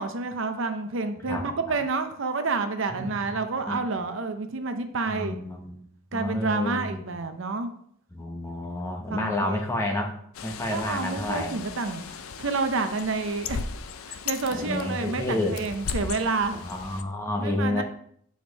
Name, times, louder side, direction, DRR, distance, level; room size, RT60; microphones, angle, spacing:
voice 1, 0.0-5.4 6.1-7.7 9.1-9.6 10.7-13.6 14.1-16.6 17.4-17.8, right 4 dB, 60° right, 8 dB, 0.6 m, -29 dB
voice 2, 1.3-1.8 2.9-3.8 5.1-5.9 6.1-7.2 8.1-10.2 10.4-11.5 14.5-15.6 16.5-17.8, left 1 dB, 15° left, 1 dB, 0.9 m, -30 dB
Bird, 10.3-17.0, left 5 dB, 75° left, 0.5 m, -37 dB
7.1 x 5.0 x 4.0 m, 0.66 s
head